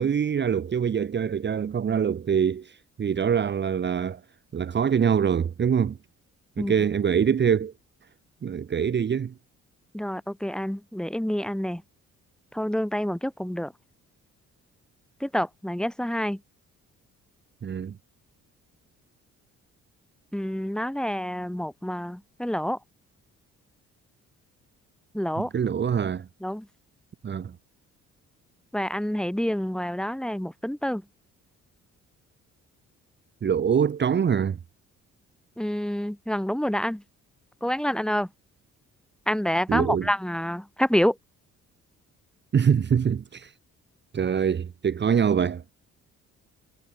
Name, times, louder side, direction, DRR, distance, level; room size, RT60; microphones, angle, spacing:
voice 1, 0.0-4.2 4.5-6.0 6.6-7.7 8.4-9.3 17.6-18.0 25.4-26.3 27.2-27.5 33.4-34.6 39.7-40.1 42.5-43.5 44.1-45.6, right 7 dB, 35° right, 1.0 m, -24 dB
voice 2, 9.9-11.8 12.5-13.7 15.2-16.4 20.3-22.8 25.1-25.5 26.4-26.7 28.7-31.0 35.6-37.0 37.6-38.3 39.3-41.2, equal, ahead, 4.6 m, -27 dB
cardioid pair, 90°, 30 cm